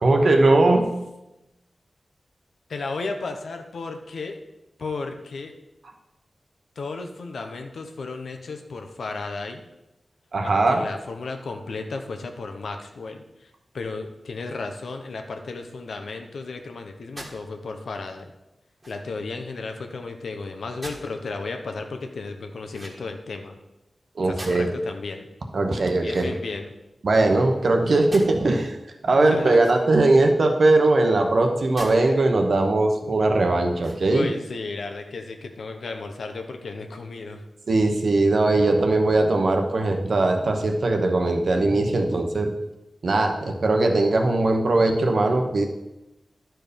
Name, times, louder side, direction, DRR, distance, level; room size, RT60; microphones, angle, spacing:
voice 1, 0.0-1.0 10.3-10.8 24.2-24.7 25.5-26.3 27.0-28.8 29.0-34.3 37.7-42.5 43.0-45.6, right 2 dB, 60° right, 4 dB, 1.0 m, -20 dB
voice 2, 2.7-4.4 4.8-5.5 6.8-9.6 10.4-18.3 18.9-23.6 24.3-25.3 25.9-26.7 29.2-29.6 32.0-32.3 34.1-37.4, left 3 dB, 85° left, 5 dB, 0.9 m, -34 dB
sound 1, 17.2-17.4 18.8-19.2 20.8-21.1 22.7-23.3 24.4-24.9 26.0-26.9 28.1-28.3 29.5-30.1 31.7-32.0 32.5-32.6 33.7-34.3, right 1 dB, 25° right, 1.5 m, -41 dB
11.5 x 4.6 x 5.2 m, 0.97 s
wide cardioid pair, 130°, 0 cm